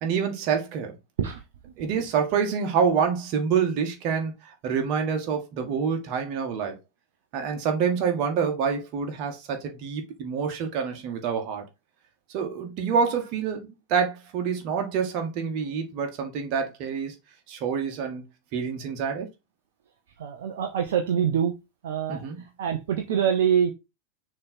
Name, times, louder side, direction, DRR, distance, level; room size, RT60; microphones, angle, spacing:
voice 1, 0.0-0.9 1.8-4.3 4.6-6.8 7.3-11.7 12.3-17.2 17.5-18.2 18.5-19.3 22.1-22.4, right 6 dB, 40° right, 1.9 m, -27 dB
voice 2, 20.2-21.5 21.8-23.7, right 8 dB, 55° right, 0.9 m, -25 dB
6.4 x 3.5 x 4.3 m
figure-of-eight pair, 90°, 0 cm